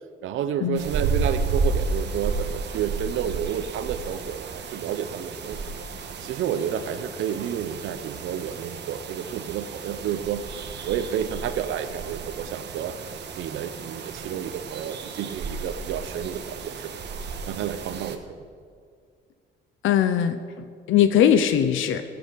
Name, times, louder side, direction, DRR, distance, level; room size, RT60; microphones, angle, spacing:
voice 1, 0.2-5.7 6.2-10.4 10.8-13.0 13.4-16.9 17.5-18.2, right 9 dB, 80° right, 10 dB, 0.8 m, -30 dB
sound 1, 0.8-18.2, right 4 dB, 60° right, 1.5 m, -32 dB
voice 2, 19.8-22.0, left 9 dB, 80° left, 10 dB, 0.7 m, -21 dB
15.5 x 8.0 x 8.2 m, 2.1 s
cardioid pair, 90°, 20 cm